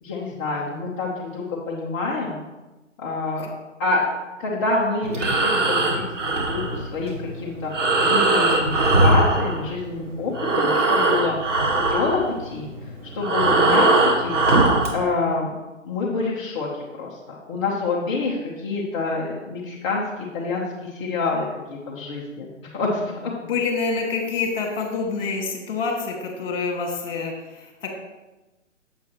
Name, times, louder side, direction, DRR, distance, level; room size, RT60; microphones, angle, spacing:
voice 1, 0.0-2.4 3.0-3.5 3.8-4.0 4.4-7.7 8.0-11.4 11.7-12.7 13.1-14.4 14.9-15.5 15.8-22.5 22.7-23.3, left 3 dB, 25° left, -5 dB, 0.9 m, -27 dB
Breathing, 5.0-10.0 10.3-15.0, right 2 dB, 65° right, 2.1 m, -20 dB
voice 2, 23.4-27.9, left 4 dB, 45° left, 1 dB, 2.1 m, -27 dB
7.8 x 7.7 x 3.0 m, 1.1 s
hypercardioid pair, 150°, 39 cm